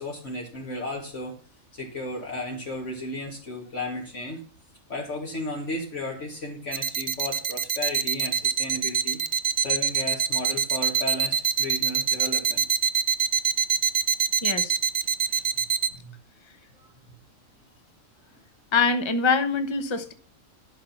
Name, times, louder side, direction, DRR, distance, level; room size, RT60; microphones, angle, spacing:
voice 1, 0.0-1.4 1.7-4.4 4.9-9.2 9.6-12.6 15.9-16.1 16.6-16.9, left 1 dB, 60° left, -2 dB, 2.3 m, -34 dB
sound 1, 6.7-15.9, right 7 dB, 45° right, 0.6 m, -24 dB
voice 2, 14.4-14.7 18.7-20.1, left 4 dB, 25° left, 9 dB, 1.0 m, -24 dB
12.0 x 5.9 x 7.1 m, 0.41 s
omnidirectional pair, 1.4 m